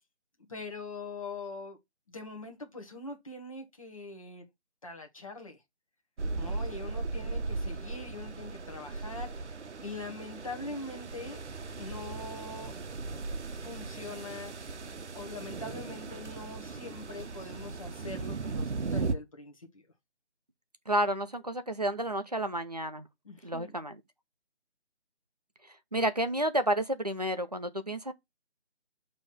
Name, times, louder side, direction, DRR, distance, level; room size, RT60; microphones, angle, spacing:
voice 1, 0.5-1.8 2.1-4.5 4.8-5.6 6.3-9.3 9.8-11.4 11.8-12.8 13.6-14.5 15.1-19.8 23.2-23.7, left 2 dB, 30° left, 1.2 m, -42 dB
sound 1, 6.2-19.1, right 3 dB, 85° right, 0.9 m, -37 dB
voice 2, 20.9-23.1 23.4-24.0 25.9-28.1, right 1 dB, 35° right, 0.6 m, -30 dB
6.6 x 3.1 x 5.9 m
figure-of-eight pair, 175°, 34 cm